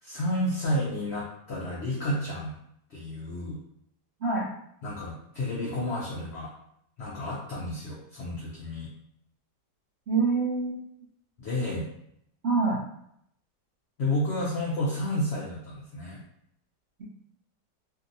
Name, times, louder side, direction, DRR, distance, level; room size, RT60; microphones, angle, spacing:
voice 1, 0.0-2.6 2.9-3.6 4.8-6.5 7.0-8.9 11.4-11.9 14.0-16.2, left 1 dB, 85° left, -4 dB, 0.5 m, -31 dB
voice 2, 10.1-10.8 12.4-12.8, right 4 dB, 65° right, -7 dB, 0.6 m, -25 dB
2.8 x 2.6 x 2.5 m, 0.72 s
omnidirectional pair, 1.8 m